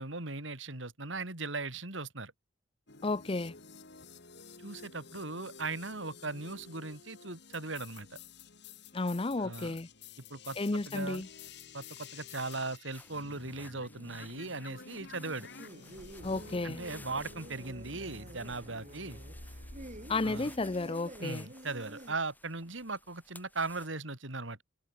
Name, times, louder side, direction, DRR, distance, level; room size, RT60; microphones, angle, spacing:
voice 1, 0.0-2.3 4.6-8.2 9.4-9.8 10.3-11.2 11.7-15.5 16.6-19.2 20.2-20.5 21.2-24.6, right 3 dB, 75° right, 3.8 m, -38 dB
sound 1, 2.9-20.9, left 4 dB, 60° left, 3.0 m, -51 dB
voice 2, 3.0-3.6 8.9-9.9 10.6-11.3 16.2-16.8 20.1-21.5, left 3 dB, 30° left, 0.6 m, -32 dB
sound 2, 12.9-23.9, left 2 dB, 10° left, 4.4 m, -57 dB
sound 3, 15.6-22.2, right 1 dB, 40° right, 6.2 m, -49 dB
head